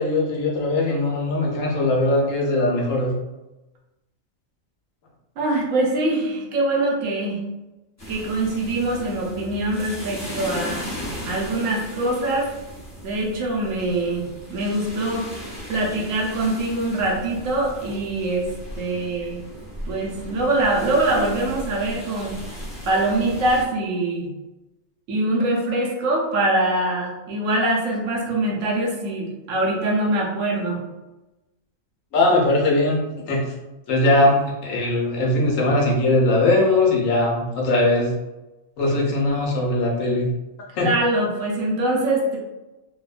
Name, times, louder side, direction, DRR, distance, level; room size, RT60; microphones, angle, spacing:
voice 1, 0.0-3.1 32.1-33.0 33.3-33.4 33.9-38.1 38.8-40.3 40.7-40.9, left 2 dB, 75° left, -2 dB, 1.1 m, -20 dB
voice 2, 5.4-7.4 8.1-10.8 11.3-12.5 13.0-15.3 15.7-18.5 18.8-19.4 19.9-22.4 22.9-24.3 25.1-30.8 40.8-42.4, right 2 dB, 75° right, -1 dB, 1.0 m, -23 dB
sound 1, 8.0-23.6, equal, 20° left, 0.5 m, -36 dB
2.9 x 2.1 x 2.3 m, 1.0 s
omnidirectional pair, 1.4 m